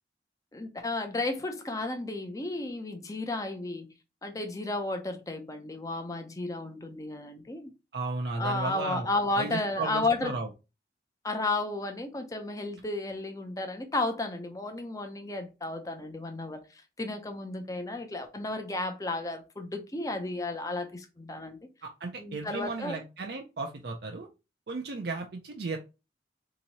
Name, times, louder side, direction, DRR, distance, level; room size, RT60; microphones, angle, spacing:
voice 1, 0.5-3.9 4.2-7.7 8.4-10.3 11.2-21.6 22.2-23.0, left 2 dB, 20° left, 0.5 m, -33 dB
voice 2, 7.9-9.1 9.4-10.5 21.8-24.3 24.7-25.8, right 3 dB, 70° right, 0.5 m, -34 dB
2.9 x 2.7 x 4.1 m
head